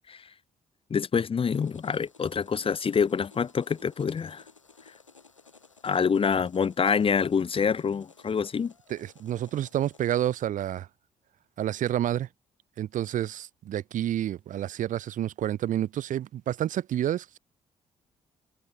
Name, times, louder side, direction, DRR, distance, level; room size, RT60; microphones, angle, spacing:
voice 1, 0.9-4.4 5.8-8.7, left 6 dB, 35° left, 1.1 m, -26 dB
sound 1, 1.5-10.2, left 4 dB, 90° left, 4.4 m, -56 dB
voice 2, 8.9-10.9 11.6-12.3 12.8-17.4, right 11 dB, 55° right, 1.6 m, -29 dB
figure-of-eight pair, 45°, 16 cm